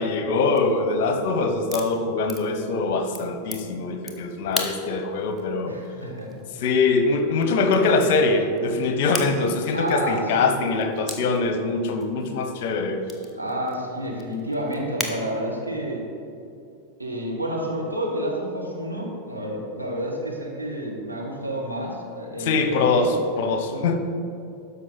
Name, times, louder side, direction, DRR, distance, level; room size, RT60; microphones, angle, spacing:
voice 1, 0.0-5.8 6.6-13.0 22.4-24.0, left 3 dB, 50° left, 6 dB, 0.9 m, -23 dB
sound 1, 0.6-15.2, equal, ahead, 1.0 m, -40 dB
voice 2, 5.6-6.4 9.7-10.5 13.3-16.1 17.0-23.1 23.7-23.8, equal, 85° right, -3 dB, 1.6 m, -29 dB
12.5 x 5.5 x 4.1 m, 2.5 s
figure-of-eight pair, 90°, 0 cm